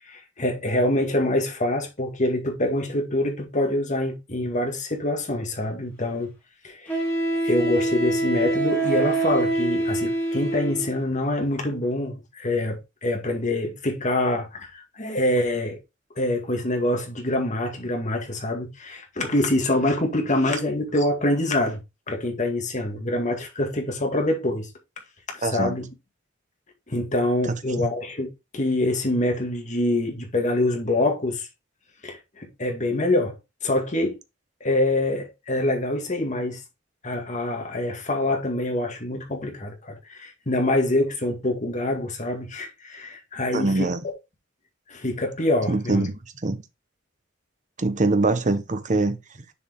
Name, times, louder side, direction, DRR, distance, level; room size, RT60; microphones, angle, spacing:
voice 1, 0.1-6.3 6.6-7.0 7.4-15.8 16.2-21.8 22.1-24.7 25.3-25.9 26.9-31.5 32.0-33.4 33.6-34.2 34.6-36.6 37.0-43.9 44.9-46.1, left 1 dB, 40° left, 2.0 m, -25 dB
Wind instrument woodwind instrument, 5.6-5.7 6.9-11.0, right 2 dB, 10° left, 2.8 m, -25 dB
voice 2, 25.4-25.7 27.8-27.9 43.5-44.0 45.7-46.1 46.4-46.6 47.8-49.2, right 2 dB, 40° right, 0.9 m, -23 dB
7.1 x 4.8 x 3.7 m
head